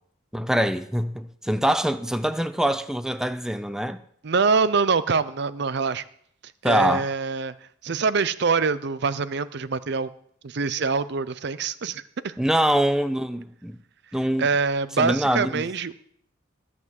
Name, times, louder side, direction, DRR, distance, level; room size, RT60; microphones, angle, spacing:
voice 1, 0.3-4.0 6.6-7.1 12.4-13.8 14.1-14.5 15.0-15.7, equal, 5° right, 0.5 m, -24 dB
voice 2, 4.2-6.0 6.6-7.5 7.8-10.1 10.4-12.3 14.4-15.9, right 4 dB, 60° right, 0.6 m, -24 dB
13.0 x 6.1 x 7.4 m
head